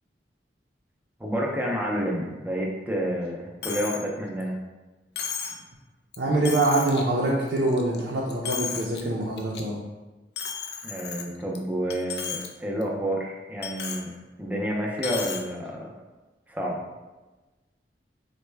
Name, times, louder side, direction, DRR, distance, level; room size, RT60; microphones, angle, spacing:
voice 1, 1.2-4.6 10.8-14.1 14.4-15.9 16.5-16.8, equal, 10° right, -2 dB, 0.5 m, -29 dB
Coin (dropping), 3.6-4.0 4.4-4.5 5.2-5.6 6.1-6.2 6.5-7.0 7.5-8.0 8.3-9.0 9.4-9.6 10.4-11.6 11.9-12.5 12.8-12.9 13.6-14.0 15.0-15.4, left 6 dB, 70° left, 0.4 m, -34 dB
voice 2, 6.2-9.8, right 2 dB, 70° right, -5 dB, 0.5 m, -24 dB
4.2 x 2.1 x 3.3 m, 1.1 s
head